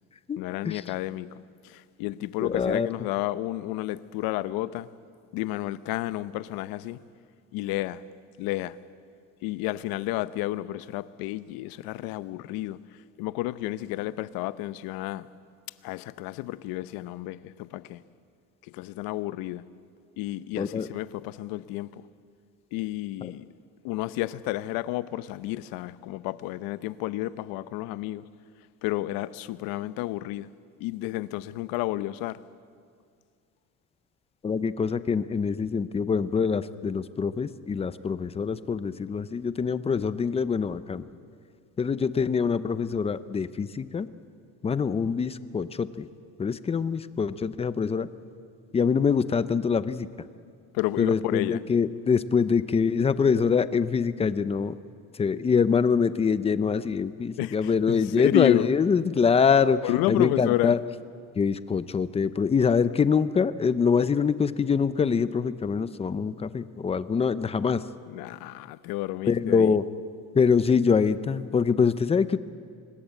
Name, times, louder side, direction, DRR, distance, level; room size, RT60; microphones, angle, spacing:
voice 1, 0.4-1.4 1.6-4.9 5.3-7.0 7.5-8.0 8.4-8.8 9.4-12.8 13.2-15.3 15.8-18.0 18.7-19.6 20.2-22.0 22.7-23.4 23.8-28.2 28.8-30.5 30.8-32.4 50.7-51.6 57.4-58.7 59.8-60.7 68.1-69.8, left 17 dB, 75° left, 0.9 m, -31 dB
voice 2, 2.4-2.9 20.6-20.9 23.2-23.3 34.4-41.0 41.8-44.1 44.6-46.1 46.4-48.1 48.7-50.1 51.0-54.8 55.1-59.8 60.1-60.8 61.4-67.8 69.3-69.8 70.3-72.4, left 6 dB, 15° left, 0.7 m, -24 dB
24.5 x 20.5 x 8.3 m
cardioid pair, 145°, 36 cm